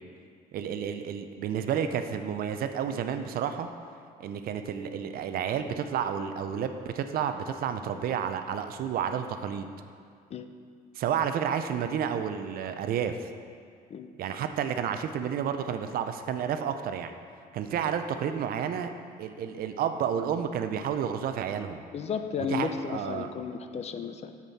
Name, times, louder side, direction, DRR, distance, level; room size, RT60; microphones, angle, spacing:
voice 1, 0.5-3.7 4.2-9.7 11.0-13.2 14.2-17.1 17.5-18.9 19.2-21.8 22.5-23.3, right 8 dB, 60° right, 8 dB, 0.5 m, -31 dB
voice 2, 21.9-24.3, left 6 dB, 40° left, 8 dB, 0.5 m, -33 dB
7.5 x 7.2 x 4.1 m, 2.2 s
cardioid pair, 110°, 17 cm